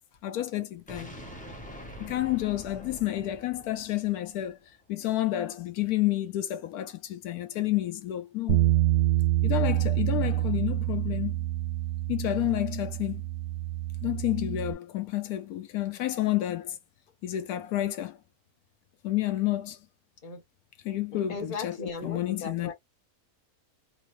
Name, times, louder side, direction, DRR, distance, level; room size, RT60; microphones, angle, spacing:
voice 1, 0.2-1.1 2.0-4.6 4.9-8.7 9.4-11.4 12.1-13.2 14.0-16.8 17.2-18.2 19.0-19.8 20.8-22.7, left 14 dB, 80° left, 1.0 m, -30 dB
sound 1, 0.9-4.8, equal, 10° left, 0.5 m, -45 dB
Bass guitar, 8.5-14.7, right 16 dB, 55° right, 0.8 m, -27 dB
voice 2, 21.1-22.7, left 4 dB, 30° left, 0.9 m, -37 dB
3.6 x 2.0 x 3.0 m
omnidirectional pair, 1.6 m